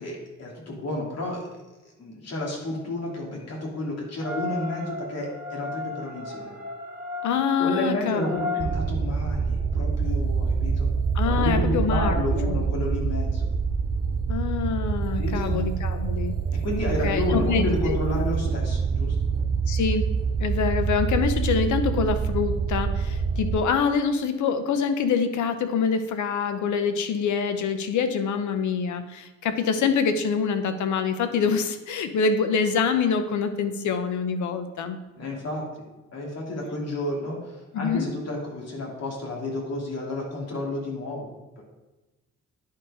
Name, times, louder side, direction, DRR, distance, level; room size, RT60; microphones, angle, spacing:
voice 1, 0.0-1.4 2.0-6.5 7.6-10.9 11.3-13.5 15.2-15.6 16.5-19.2 35.2-35.8 36.1-41.3 41.6-41.7, left 1 dB, 55° left, -2 dB, 3.0 m, -31 dB
sound 1, 4.2-8.7, left 4 dB, 5° right, 2.2 m, -34 dB
voice 2, 7.2-8.2 11.1-12.2 12.5-12.6 14.3-16.3 17.0-18.0 19.7-20.1 20.4-35.0 37.7-38.1, left 6 dB, 75° left, 9 dB, 0.9 m, -25 dB
sound 2, 8.6-23.6, right 5 dB, 30° right, 0.5 m, -26 dB
10.5 x 4.7 x 5.0 m, 1.1 s
cardioid pair, 90°, 30 cm